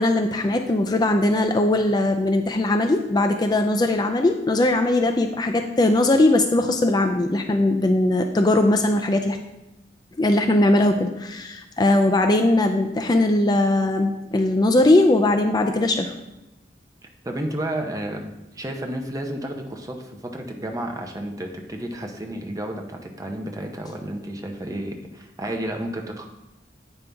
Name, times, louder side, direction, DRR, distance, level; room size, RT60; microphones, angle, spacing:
voice 1, 0.0-9.4 10.2-16.1, left 2 dB, 25° left, 5 dB, 0.4 m, -20 dB
voice 2, 17.2-18.3 18.5-26.3, right 1 dB, 20° right, 3 dB, 0.7 m, -31 dB
8.7 x 5.3 x 3.4 m, 0.98 s
head